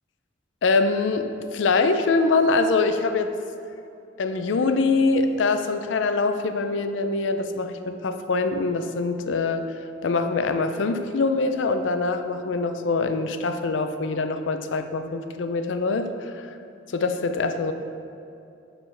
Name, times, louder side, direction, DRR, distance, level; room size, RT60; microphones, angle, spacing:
voice 1, 0.6-1.3 1.5-3.3 4.2-9.6 10.0-16.5 16.9-17.7, left 3 dB, 80° left, 8 dB, 0.4 m, -24 dB
8.4 x 4.9 x 3.3 m, 2.7 s
head